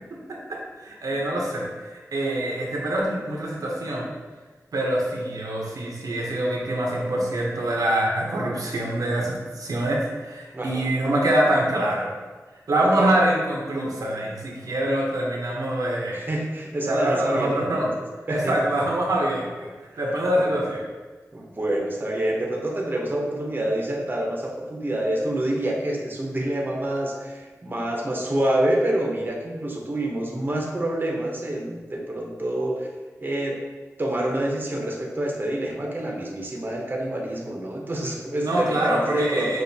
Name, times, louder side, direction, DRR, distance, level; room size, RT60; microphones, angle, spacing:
voice 1, 0.5-4.1 4.7-12.1 12.7-16.3 16.8-17.9 18.3-19.7 20.0-20.8 38.4-39.6, right 1 dB, 85° right, -2 dB, 0.7 m, -25 dB
voice 2, 10.5-10.9 12.8-13.1 16.1-17.9 18.3-18.5 20.3-20.5 21.3-32.9 33.2-33.5 34.0-39.6, right 1 dB, 35° right, -1 dB, 0.8 m, -27 dB
6.1 x 2.4 x 2.7 m, 1.3 s
wide cardioid pair, 65°, 6 cm